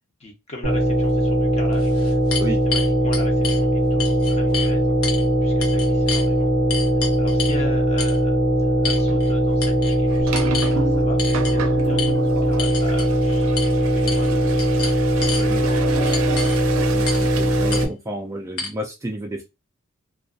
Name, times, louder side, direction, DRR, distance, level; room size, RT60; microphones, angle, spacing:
voice 1, 0.2-2.4 2.6-6.5 7.2-13.5 13.8-16.6, left 2 dB, 30° left, 1 dB, 0.8 m, -39 dB
sound 1, 0.6-17.8, equal, 60° left, 1.0 m, -20 dB
sound 2, 1.1-1.2 1.7-3.6 4.0-4.7 5.0-5.2 5.6-6.3 6.7-7.6 8.0-8.2 8.8-9.3 9.6-10.0 10.3-10.7 11.2-11.5 12.0-12.1 12.6-13.1 13.6-13.7 14.1-14.3 14.6-15.4 16.1-16.6 17.1-17.3 17.7-17.8 18.6-18.7, left 5 dB, 85° left, 0.7 m, -29 dB
sound 3, 7.0-7.2 7.6-7.9 9.0-17.9, right 5 dB, 80° right, 0.4 m, -32 dB
voice 2, 16.9-19.4, right 1 dB, 15° right, 2 dB, 0.3 m, -31 dB
2.5 x 2.3 x 2.3 m, 0.24 s
head